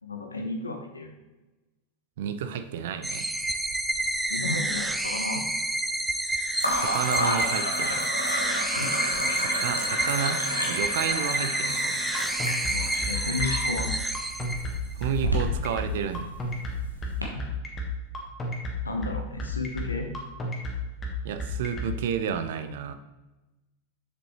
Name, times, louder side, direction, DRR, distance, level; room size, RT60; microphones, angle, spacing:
voice 1, 0.0-1.1 4.3-5.4 8.7-8.9 12.7-13.9 17.2-17.4 18.8-20.1, left 3 dB, 80° left, 4 dB, 1.1 m, -33 dB
voice 2, 2.2-3.3 6.8-8.1 9.2-12.0 15.0-16.3 21.2-22.9, right 8 dB, 55° right, 10 dB, 0.6 m, -31 dB
sound 1, 3.0-14.9, right 1 dB, 5° right, 0.5 m, -29 dB
sound 2, 3.4-4.2 4.5-5.1 6.6-17.2, equal, 90° right, 1.4 m, -31 dB
sound 3, 12.1-21.9, left 1 dB, 20° left, 1.5 m, -32 dB
7.4 x 6.9 x 3.2 m, 1.1 s
figure-of-eight pair, 90°, 0 cm